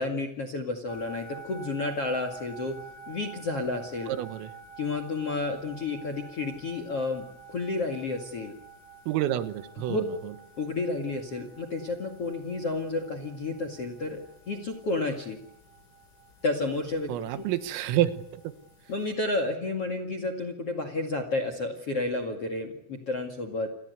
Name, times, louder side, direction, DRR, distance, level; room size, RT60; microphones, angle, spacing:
voice 1, 0.0-2.7 3.1-4.1 4.8-8.5 9.8-10.0 10.6-15.4 16.4-17.1 18.9-23.7, left 2 dB, 50° left, 9 dB, 1.9 m, -31 dB
sound 1, 0.9-19.1, right 4 dB, 80° left, 10.0 m, -49 dB
voice 2, 4.1-4.5 9.1-10.3 17.1-18.4, right 12 dB, 80° right, 12 dB, 3.8 m, -29 dB
29.0 x 22.5 x 8.2 m, 0.78 s
omnidirectional pair, 6.0 m